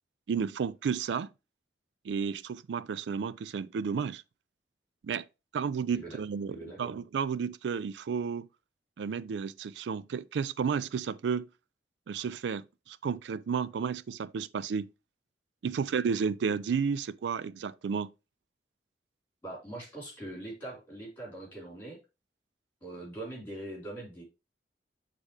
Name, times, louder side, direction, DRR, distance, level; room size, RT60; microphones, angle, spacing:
voice 1, 0.3-1.3 2.0-4.2 5.0-5.3 5.5-8.5 9.0-11.5 12.1-14.9 15.6-18.1, right 6 dB, 85° right, 0.4 m, -32 dB
voice 2, 6.5-6.9 19.4-22.0 22.8-24.2, right 1 dB, 10° left, 4.3 m, -42 dB
8.1 x 3.7 x 3.3 m
head